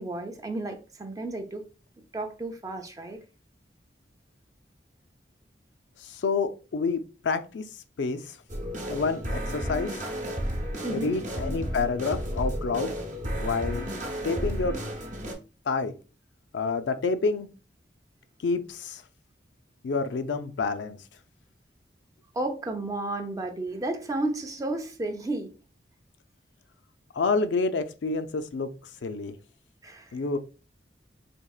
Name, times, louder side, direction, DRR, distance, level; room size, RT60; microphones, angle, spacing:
voice 1, 0.0-1.6 2.1-3.2 10.8-11.2 22.3-25.5 29.8-30.1, right 2 dB, 20° right, 0.5 m, -32 dB
voice 2, 6.0-7.7 8.0-8.4 8.9-10.0 10.9-12.9 13.4-13.9 14.2-14.8 15.7-15.9 16.5-17.5 18.4-19.0 19.8-21.0 27.1-28.7 29.0-29.4 30.1-30.4, left 4 dB, 85° left, 0.4 m, -28 dB
sound 1, 8.5-15.3, equal, 45° right, 0.8 m, -32 dB
4.5 x 2.8 x 2.3 m
head